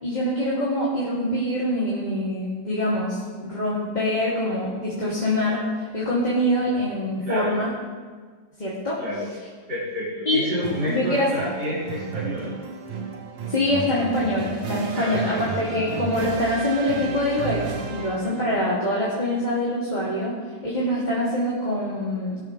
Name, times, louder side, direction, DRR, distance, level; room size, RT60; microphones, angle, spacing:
voice 1, 0.0-7.7 8.6-9.0 10.2-10.5 10.9-11.3 13.5-20.3 20.6-22.4, left 1 dB, 25° left, -8 dB, 3.3 m, -24 dB
voice 2, 7.2-7.6 9.0-9.3 9.7-12.5 14.9-15.7, equal, 65° right, -12 dB, 6.3 m, -29 dB
sound 1, 10.6-18.5, right 5 dB, 90° right, 2.2 m, -33 dB
22.5 x 14.0 x 3.6 m, 1.5 s
omnidirectional pair, 1.9 m